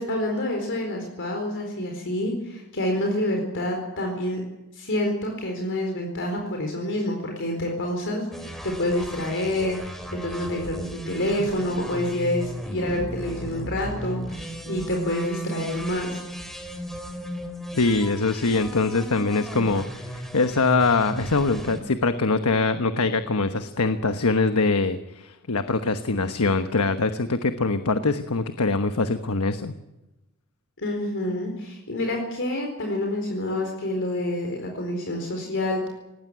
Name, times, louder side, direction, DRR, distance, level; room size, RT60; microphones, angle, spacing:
voice 1, 0.0-4.4 4.7-16.2 30.8-35.9, left 1 dB, 60° left, 2 dB, 4.4 m, -28 dB
sound 1, 8.3-21.8, right 1 dB, ahead, 3.1 m, -36 dB
voice 2, 17.8-29.7, left 3 dB, 90° left, 9 dB, 1.2 m, -23 dB
19.0 x 18.5 x 10.0 m, 0.98 s
head